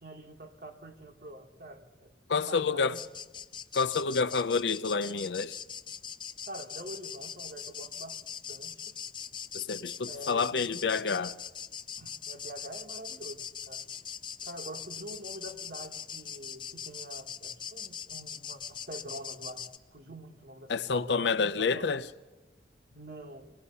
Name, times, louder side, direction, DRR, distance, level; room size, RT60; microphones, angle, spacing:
voice 1, 0.0-2.1 2.5-3.0 6.5-8.2 8.5-8.9 10.1-10.9 12.0-13.8 14.4-19.6 19.9-21.3 21.6-21.9 22.9-23.4, right 1 dB, 55° right, 1.9 m, -45 dB
voice 2, 2.3-3.0 3.7-5.6 9.5-11.4 20.7-22.0, left 5 dB, 80° left, 0.6 m, -28 dB
sound 1, 2.9-19.8, left 8 dB, 25° left, 0.6 m, -42 dB
25.5 x 20.0 x 5.6 m
head